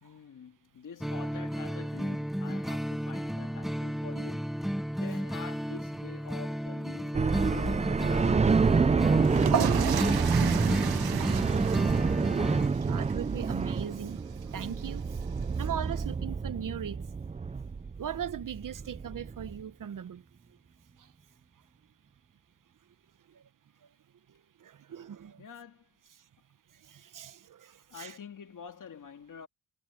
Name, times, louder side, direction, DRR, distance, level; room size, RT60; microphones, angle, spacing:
voice 1, 0.0-7.8 8.1-9.9 10.4-11.1 25.0-25.1 25.4-25.9 27.9-29.5, left 7 dB, 55° left, 2.7 m, -47 dB
sound 1, 1.0-12.7, equal, ahead, 0.8 m, -33 dB
sound 2, 7.1-19.6, right 5 dB, 20° right, 0.4 m, -28 dB
sound 3, 9.2-16.0, right 8 dB, 85° right, 1.4 m, -35 dB
voice 2, 12.8-15.2 15.6-17.1 18.0-20.2 21.0-21.1 23.3-23.4 24.6-25.4 26.7-28.1, right 9 dB, 60° right, 1.1 m, -39 dB
wide cardioid pair, 120°, 36 cm